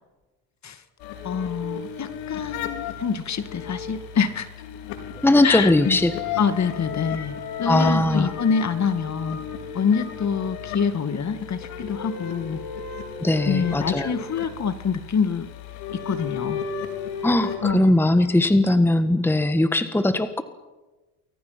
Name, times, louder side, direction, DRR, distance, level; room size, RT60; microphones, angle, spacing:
sound 1, 1.0-17.6, left 7 dB, 85° left, 4.2 m, -34 dB
voice 1, 1.2-4.5 5.4-6.0 6.4-9.4 9.7-12.6 13.4-15.5 16.1-16.6 17.6-17.9 18.2-18.5, left 6 dB, 35° left, 11 dB, 2.2 m, -26 dB
voice 2, 5.2-6.1 7.7-8.3 13.2-14.1 17.2-20.4, left 1 dB, 5° left, 10 dB, 1.5 m, -19 dB
29.5 x 22.5 x 6.0 m, 1.2 s
supercardioid pair, 90°, 45 cm